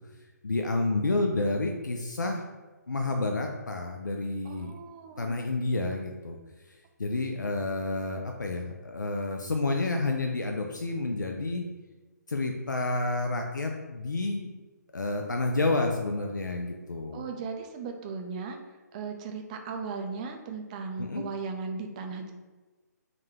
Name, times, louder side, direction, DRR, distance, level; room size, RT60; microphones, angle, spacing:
voice 1, 0.4-2.4 2.9-4.7 5.2-6.4 7.0-11.6 12.3-14.5 14.9-17.2 21.0-21.3, left 2 dB, 90° left, 3 dB, 0.4 m, -29 dB
voice 2, 4.5-5.4 17.1-18.6 18.9-22.3, right 4 dB, 25° right, 4 dB, 0.4 m, -37 dB
3.7 x 2.3 x 3.2 m, 1.2 s
figure-of-eight pair, 140°, 10 cm